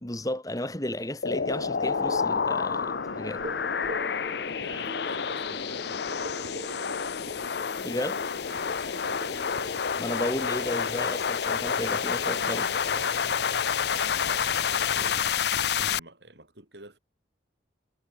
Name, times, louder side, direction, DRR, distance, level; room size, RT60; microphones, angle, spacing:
voice 1, 0.0-3.4 7.8-8.2 10.0-12.7, left 1 dB, 20° left, 2.0 m, -33 dB
sound 1, 1.2-16.0, left 6 dB, 65° left, 0.6 m, -29 dB
sound 2, 1.3-15.3, right 1 dB, 45° right, 1.7 m, -44 dB
voice 2, 4.5-7.1 8.4-9.8 10.1-11.0 12.0-13.2 13.9-15.3 15.7-17.0, right 2 dB, 70° right, 4.5 m, -48 dB
Telephone, 10.2-15.2, equal, 25° right, 4.7 m, -52 dB
head